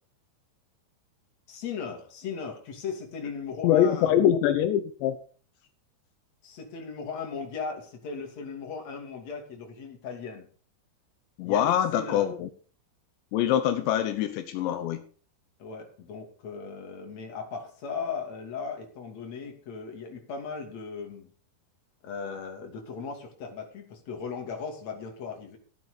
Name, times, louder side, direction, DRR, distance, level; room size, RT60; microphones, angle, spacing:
voice 1, 1.5-4.1 6.4-10.5 11.4-12.3 15.6-21.3 22.0-25.6, left 5 dB, 40° left, 3 dB, 3.5 m, -37 dB
voice 2, 3.6-5.2 11.4-12.5 13.3-15.0, left 10 dB, 80° left, 10 dB, 3.1 m, -24 dB
14.5 x 9.1 x 5.2 m, 0.41 s
omnidirectional pair, 5.2 m